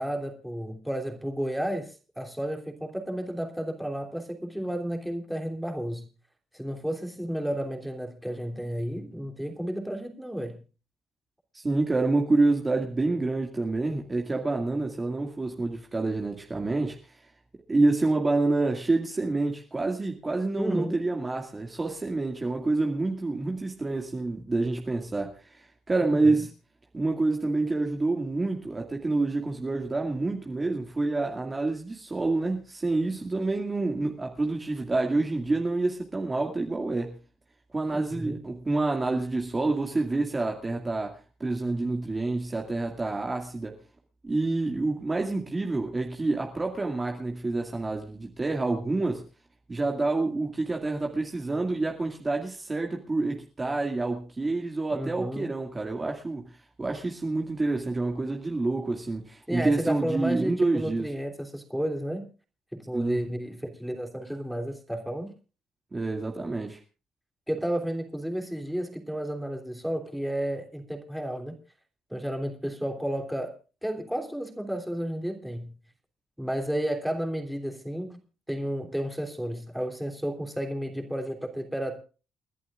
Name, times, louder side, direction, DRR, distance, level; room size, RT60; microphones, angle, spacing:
voice 1, 0.0-6.1 6.5-10.6 20.6-21.0 26.0-26.5 37.9-38.4 54.9-55.5 59.5-62.3 62.7-65.3 67.5-71.6 72.1-73.5 73.8-75.8 76.4-78.2 78.5-82.0, equal, ahead, 3.2 m, -32 dB
voice 2, 11.5-17.0 17.7-26.5 26.9-37.2 37.7-43.8 44.2-49.2 49.7-56.5 56.8-61.1 62.9-63.3 65.9-66.8, right 2 dB, 25° right, 2.2 m, -28 dB
30.0 x 11.0 x 2.5 m
cardioid pair, 90°, 0 cm